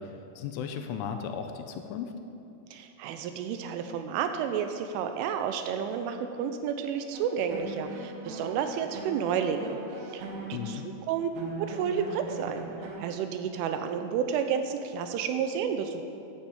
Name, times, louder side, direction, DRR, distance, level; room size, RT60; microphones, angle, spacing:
voice 1, 0.0-2.1 10.5-10.9, left 7 dB, 80° left, 6 dB, 3.0 m, -36 dB
voice 2, 2.7-9.8 10.0-11.3 11.6-12.7 13.0-16.0, right 7 dB, 80° right, 7 dB, 3.0 m, -31 dB
sound 1, 7.1-13.1, right 3 dB, 65° right, 3.0 m, -40 dB
10.0 x 8.5 x 8.0 m, 2.6 s
omnidirectional pair, 5.8 m